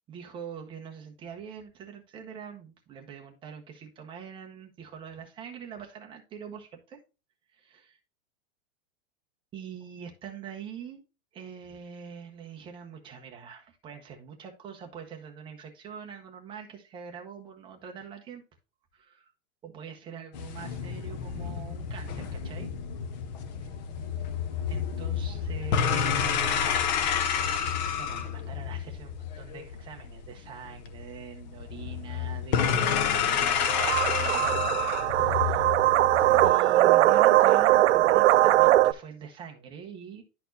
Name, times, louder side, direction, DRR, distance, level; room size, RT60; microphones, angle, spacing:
voice 1, 0.1-7.0 7.5-8.0 9.5-11.0 11.3-18.4 18.9-19.3 19.6-22.7 24.7-26.7 28.0-34.7 35.1-35.7 36.4-40.2, right 7 dB, 15° right, 0.8 m, -44 dB
sound 1, 20.3-36.5, left 7 dB, 35° left, 0.6 m, -30 dB
sound 2, 33.7-38.9, right 15 dB, 65° right, 0.6 m, -21 dB
11.5 x 4.2 x 2.6 m
supercardioid pair, 175°, 38 cm